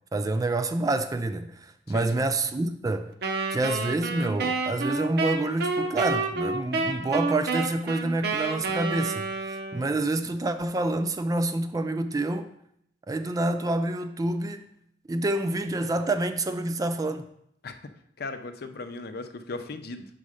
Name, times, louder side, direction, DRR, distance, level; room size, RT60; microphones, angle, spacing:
voice 1, 0.1-3.1 3.5-12.5 13.1-14.7 15.1-17.3, right 2 dB, 20° right, 0.3 m, -27 dB
Wind instrument woodwind instrument, 3.2-10.1, right 3 dB, 65° right, 0.6 m, -29 dB
voice 2, 18.2-20.1, left 3 dB, 60° left, 0.6 m, -37 dB
6.4 x 4.1 x 4.9 m
head